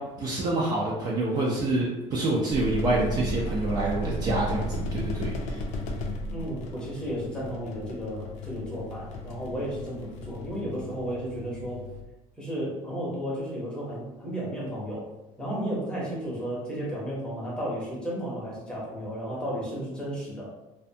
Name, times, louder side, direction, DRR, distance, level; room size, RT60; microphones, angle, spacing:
voice 1, 0.2-5.6, right 2 dB, 30° right, -4 dB, 0.4 m, -27 dB
sound 1, 2.5-12.0, left 1 dB, 75° left, 0.4 m, -35 dB
voice 2, 6.3-11.9 12.4-15.1 15.4-20.5, equal, 5° left, -6 dB, 0.7 m, -33 dB
2.4 x 2.2 x 2.6 m, 1.0 s
cardioid pair, 165°, 12 cm